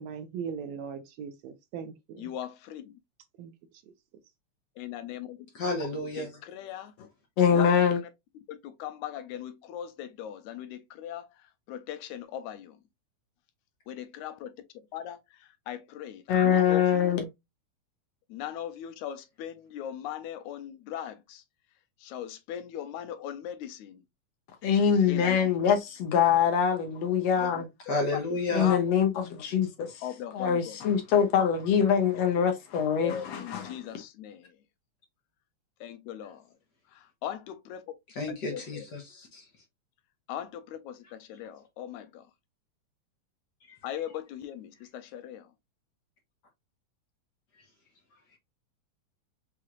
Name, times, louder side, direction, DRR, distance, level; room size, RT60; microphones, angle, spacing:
voice 1, 0.0-2.3 3.4-3.5, right 7 dB, 75° right, 1.7 m, -39 dB
voice 2, 2.2-2.9 4.8-5.4 6.2-6.9 7.5-7.7 8.5-11.3 11.7-12.8 13.9-14.5 14.9-17.1 18.3-21.4 22.0-24.0 25.1-25.5 27.5-28.8 30.0-30.8 33.0-34.5 35.8-36.4 36.9-37.8 38.3-38.9 40.3-42.2 43.8-45.5, left 10 dB, 90° left, 2.0 m, -39 dB
voice 3, 5.5-6.4 27.9-28.7 38.1-39.4 43.7-43.8, left 2 dB, 55° left, 1.2 m, -32 dB
voice 4, 7.4-8.0 16.3-17.3 24.6-27.7 28.5-30.0 30.3-33.8, left 7 dB, 70° left, 1.8 m, -24 dB
5.7 x 3.1 x 2.4 m
omnidirectional pair, 3.4 m